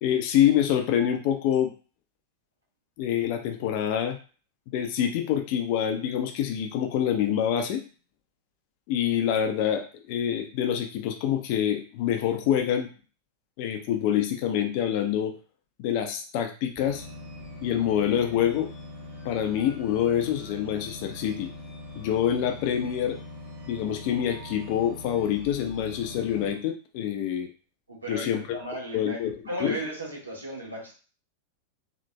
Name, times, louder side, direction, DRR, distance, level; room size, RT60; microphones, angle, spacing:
voice 1, 0.0-1.7 3.0-4.2 4.7-7.8 8.9-12.9 13.6-15.3 15.8-17.1 17.6-18.7 19.2-21.5 22.0-23.2 23.7-27.5 28.1-28.6 28.9-29.3 29.6-29.8, left 10 dB, 45° left, 5 dB, 0.6 m, -26 dB
sound 1, 16.7-26.5, left 2 dB, 25° right, 1.7 m, -42 dB
voice 2, 27.9-30.9, right 1 dB, 80° right, -3 dB, 1.4 m, -35 dB
4.0 x 2.9 x 2.3 m, 0.37 s
figure-of-eight pair, 90°, 0 cm